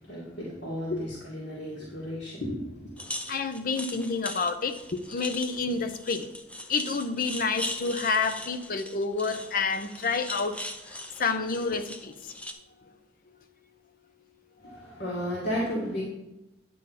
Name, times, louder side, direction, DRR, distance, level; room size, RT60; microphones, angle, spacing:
voice 1, 0.0-3.0 14.6-16.0, equal, 70° left, -7 dB, 2.1 m, -34 dB
sound 1, 3.0-12.5, left 1 dB, 10° left, 0.6 m, -40 dB
voice 2, 3.3-6.3 6.7-10.6 11.2-12.3, left 4 dB, 55° left, 9 dB, 0.7 m, -29 dB
9.9 x 3.8 x 6.6 m, 0.95 s
head